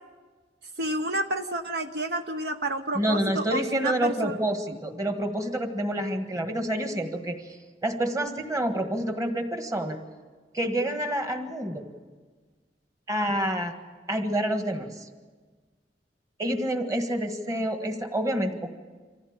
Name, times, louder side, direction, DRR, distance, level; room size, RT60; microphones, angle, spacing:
voice 1, 0.8-4.3, right 1 dB, 60° right, 6 dB, 1.0 m, -30 dB
voice 2, 2.9-10.0 10.5-11.9 13.1-13.7 14.1-15.1 16.4-18.7, right 1 dB, 20° right, 5 dB, 1.6 m, -28 dB
25.0 x 15.5 x 8.9 m, 1.4 s
head